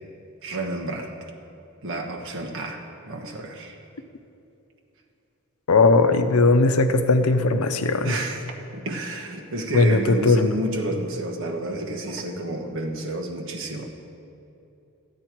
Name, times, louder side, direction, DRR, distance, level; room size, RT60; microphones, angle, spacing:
voice 1, 0.4-1.1 1.8-3.8 8.0-8.4 8.7-13.9, right 2 dB, 60° right, 1 dB, 1.3 m, -30 dB
voice 2, 5.7-8.1 9.7-10.6, left 3 dB, 80° left, 9 dB, 0.7 m, -18 dB
14.5 x 8.9 x 4.5 m, 2.8 s
head